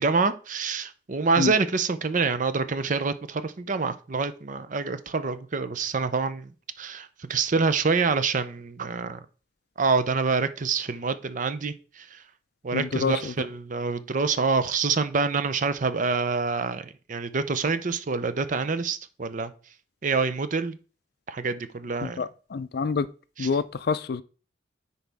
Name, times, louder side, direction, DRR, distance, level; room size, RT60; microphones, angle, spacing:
voice 1, 0.0-6.5 6.8-9.2 9.8-12.2 12.6-19.5 20.0-20.8 21.3-22.2, right 4 dB, 45° right, 0.6 m, -26 dB
voice 2, 12.7-13.3 22.0-23.1 23.4-24.2, left 5 dB, 55° left, 0.4 m, -27 dB
9.9 x 4.2 x 3.5 m
head